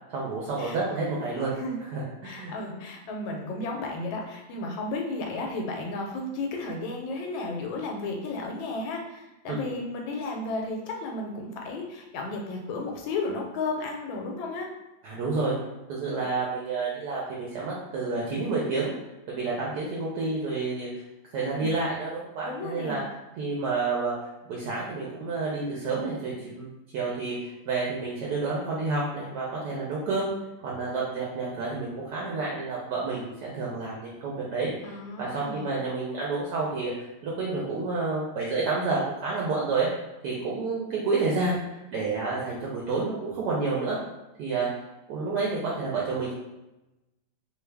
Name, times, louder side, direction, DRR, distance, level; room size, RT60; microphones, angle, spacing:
voice 1, 0.1-1.5 1.8-2.5 9.5-9.6 15.0-15.5 15.9-19.0 19.3-20.9 21.3-23.0 23.4-24.1 24.5-27.4 27.7-30.3 30.6-36.9 37.2-39.9 40.2-41.6 41.9-44.0 44.4-44.7 45.1-46.3, right 3 dB, 70° right, -4 dB, 1.1 m, -29 dB
voice 2, 2.2-14.7 21.4-21.7 22.5-23.0 34.8-35.7, left 2 dB, 90° left, 1 dB, 1.4 m, -33 dB
3.1 x 2.3 x 3.3 m, 0.97 s
omnidirectional pair, 2.1 m